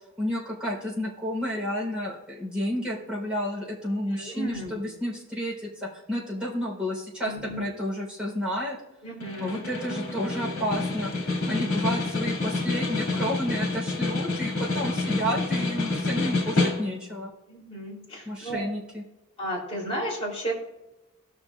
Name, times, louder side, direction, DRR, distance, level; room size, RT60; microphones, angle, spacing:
voice 1, 0.2-7.3 7.6-8.8 9.4-11.1 11.5-17.3 18.2-19.0, equal, 5° right, -6 dB, 3.7 m, -31 dB
voice 2, 4.1-4.8 7.2-7.7 9.0-9.7 11.4-11.6 17.5-18.7 19.4-20.5, right 1 dB, 25° left, -5 dB, 3.3 m, -34 dB
Snare drum, 9.2-17.1, left 3 dB, 70° left, 2.2 m, -28 dB
19.0 x 6.4 x 2.4 m, 0.98 s
head